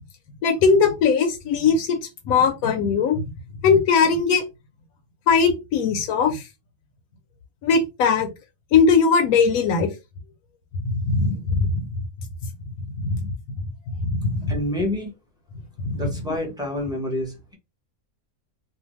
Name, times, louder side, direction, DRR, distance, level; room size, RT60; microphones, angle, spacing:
voice 1, 0.4-2.0 2.3-3.2 3.6-4.4 5.3-6.4 7.6-8.3 8.7-9.9 11.0-11.8 13.0-13.3 14.0-14.5 15.8-16.0, left 5 dB, 85° left, 1.0 m, -19 dB
voice 2, 14.5-15.1 15.9-17.6, left 1 dB, 5° right, 0.6 m, -28 dB
2.7 x 2.3 x 2.9 m
omnidirectional pair, 1.5 m